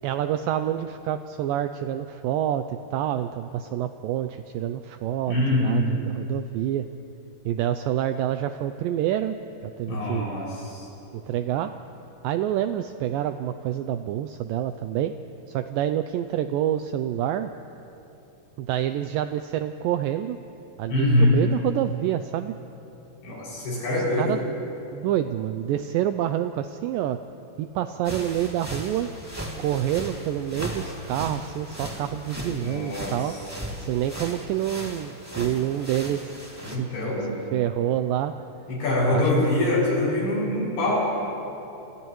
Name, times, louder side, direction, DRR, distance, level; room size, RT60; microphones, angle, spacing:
voice 1, 0.0-6.9 7.5-9.4 9.6-10.3 11.3-11.7 12.2-15.1 15.5-17.5 18.6-20.4 20.8-22.5 24.2-27.2 27.6-29.1 29.6-33.3 33.7-36.4 36.7-36.9 37.5-38.3 39.1-39.3, right 11 dB, 90° right, 9 dB, 1.9 m, -27 dB
voice 2, 5.3-5.9 9.9-10.9 20.9-21.3 23.2-24.3 32.6-33.4 36.6-37.3 38.7-41.0, left 1 dB, 75° left, -5 dB, 8.5 m, -24 dB
sound 1, 28.0-36.8, equal, 5° right, 1.3 m, -37 dB
29.5 x 28.5 x 3.1 m, 2.9 s
omnidirectional pair, 4.6 m